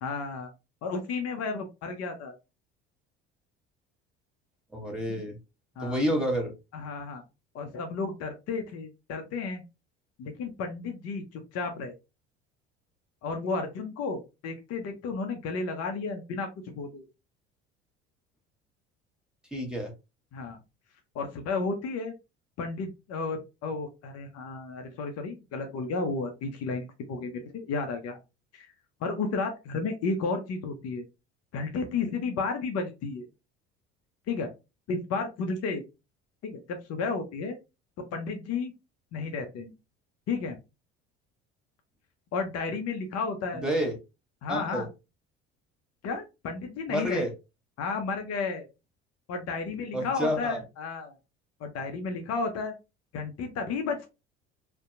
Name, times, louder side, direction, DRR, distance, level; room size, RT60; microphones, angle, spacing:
voice 1, 0.0-0.5 0.8-2.3 5.1-5.2 5.8-6.0 6.7-7.2 7.5-9.6 10.2-11.9 13.2-17.0 20.3-20.6 21.1-22.1 22.6-28.2 28.5-28.7 29.0-31.0 31.5-33.3 34.3-34.5 34.9-35.8 36.4-37.6 38.1-38.7 39.1-39.7 40.3-40.6 42.3-43.6 44.4-44.9 46.0-47.3 47.8-48.7 49.3-51.1 51.6-52.7 53.1-54.1, left 4 dB, 50° left, 5 dB, 0.6 m, -32 dB
voice 2, 4.7-5.4 5.8-6.5 19.5-19.9 43.6-43.9 44.5-44.9 46.9-47.3 49.9-50.6, equal, 5° right, 1 dB, 1.1 m, -29 dB
2.6 x 2.1 x 2.4 m, 0.26 s
hypercardioid pair, 65°, 32 cm